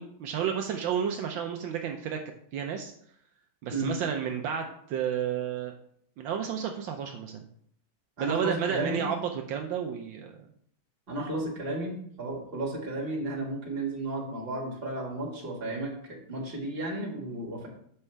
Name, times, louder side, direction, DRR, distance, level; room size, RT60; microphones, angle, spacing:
voice 1, 0.0-2.2 2.5-2.9 3.6-5.7 6.2-7.5 8.2-10.3, right 8 dB, 80° right, 4 dB, 1.4 m, -31 dB
voice 2, 8.2-9.1 11.1-17.7, right 2 dB, 30° right, -2 dB, 1.8 m, -33 dB
7.2 x 5.5 x 3.3 m, 0.65 s
omnidirectional pair, 2.2 m